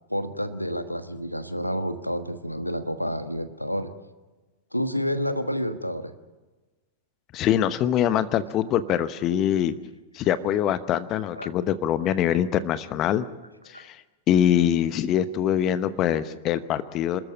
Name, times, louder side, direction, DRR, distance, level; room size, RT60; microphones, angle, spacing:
voice 1, 0.1-3.9 4.7-6.1 11.3-11.5 13.7-13.9, equal, 90° left, 10 dB, 1.4 m, -29 dB
voice 2, 7.3-9.7 10.1-13.3 13.7-14.0 14.3-17.2, left 10 dB, 35° left, 14 dB, 0.9 m, -24 dB
27.0 x 13.5 x 8.7 m, 1.2 s
figure-of-eight pair, 95°, 0 cm